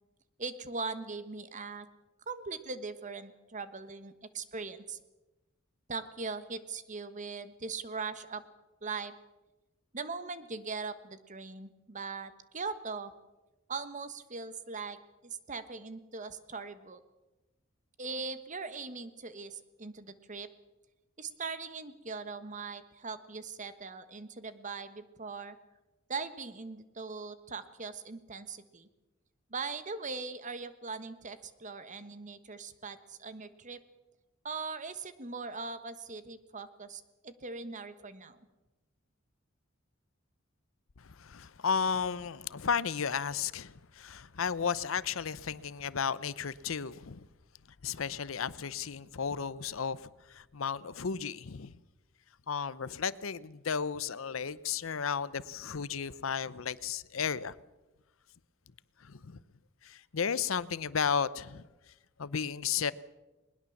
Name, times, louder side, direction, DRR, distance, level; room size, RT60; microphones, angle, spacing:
voice 1, 0.4-1.9 2.3-5.0 5.9-8.4 8.8-9.1 9.9-13.1 13.7-15.0 15.2-17.0 18.0-20.5 21.2-25.6 26.1-28.9 29.5-33.8 34.4-38.4, right 4 dB, 40° right, 1.3 m, -40 dB
voice 2, 41.0-47.3 47.8-51.7 52.5-57.5 59.0-59.4 59.8-61.7 62.2-62.9, left 6 dB, 85° left, 0.7 m, -34 dB
20.5 x 20.0 x 7.2 m
head